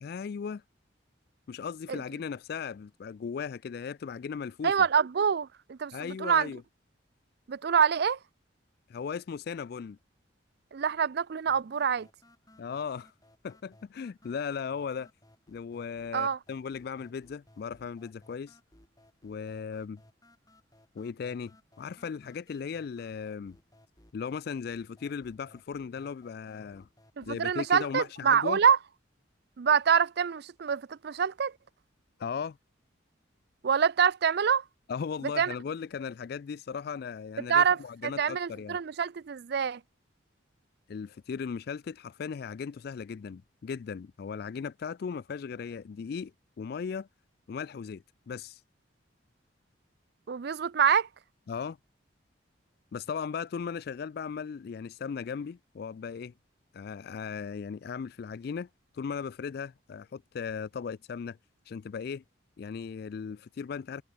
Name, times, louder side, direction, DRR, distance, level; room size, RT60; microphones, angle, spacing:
voice 1, 0.0-0.6 1.5-4.7 5.9-6.6 8.9-10.0 12.6-13.1 13.4-15.1 15.5-18.6 19.2-20.0 21.0-21.5 21.8-23.6 24.1-26.9 27.3-28.6 32.2-32.6 34.9-38.8 40.9-46.3 46.6-47.1 47.5-48.6 51.5-51.8 52.9-56.3 56.7-58.7 58.9-61.4 61.7-62.2 62.6-64.0, left 6 dB, 50° left, 0.3 m, -37 dB
voice 2, 4.6-6.5 7.5-8.2 10.7-12.1 16.1-16.4 27.2-28.8 29.6-31.5 33.6-34.6 35.4-35.5 37.5-39.8 50.3-51.1, right 7 dB, 55° right, 0.4 m, -26 dB
sound 1, 11.5-27.5, left 1 dB, 20° left, 5.5 m, -61 dB
head